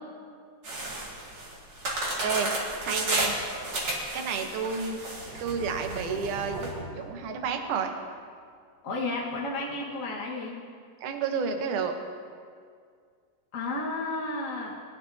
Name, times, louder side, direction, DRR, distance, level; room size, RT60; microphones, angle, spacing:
sound 1, 0.6-6.7, right 1 dB, 35° right, 2.4 m, -32 dB
voice 1, 2.8-3.3 4.1-5.0 5.4-7.9 11.0-11.9, right 6 dB, 70° right, 5 dB, 2.4 m, -30 dB
sound 2, 5.0-7.9, right 2 dB, 55° right, 1.3 m, -40 dB
voice 2, 8.8-10.6 13.5-14.7, left 2 dB, 50° left, -3 dB, 0.9 m, -32 dB
20.0 x 11.0 x 2.8 m, 2.1 s
omnidirectional pair, 3.9 m